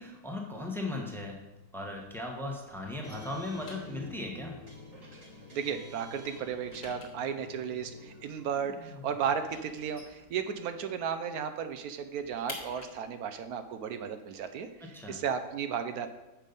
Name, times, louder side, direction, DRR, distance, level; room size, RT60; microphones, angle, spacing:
voice 1, 0.0-1.4 1.7-4.6 14.9-15.2, left 2 dB, ahead, 0 dB, 0.7 m, -37 dB
sound 1, 2.5-5.7 6.0-11.0 11.3-11.4 11.7-15.4, left 3 dB, 40° left, 1.5 m, -50 dB
sound 2, 3.0-10.4, left 1 dB, 25° right, 1.0 m, -49 dB
voice 2, 5.5-14.7 15.1-16.1, right 7 dB, 70° right, 9 dB, 0.9 m, -34 dB
7.3 x 5.3 x 5.3 m, 1.0 s
omnidirectional pair, 2.0 m